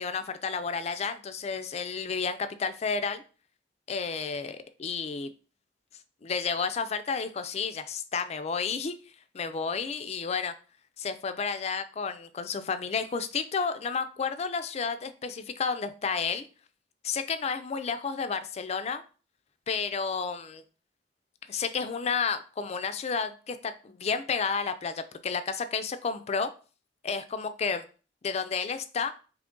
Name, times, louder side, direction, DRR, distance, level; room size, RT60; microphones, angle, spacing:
voice 1, 0.0-3.2 3.9-5.3 6.2-9.0 9.3-10.5 11.0-16.5 17.0-19.0 19.7-20.6 21.5-26.5 27.0-27.8 28.2-29.1, left 5 dB, 35° left, 10 dB, 0.4 m, -31 dB
3.8 x 3.0 x 3.6 m, 0.37 s
head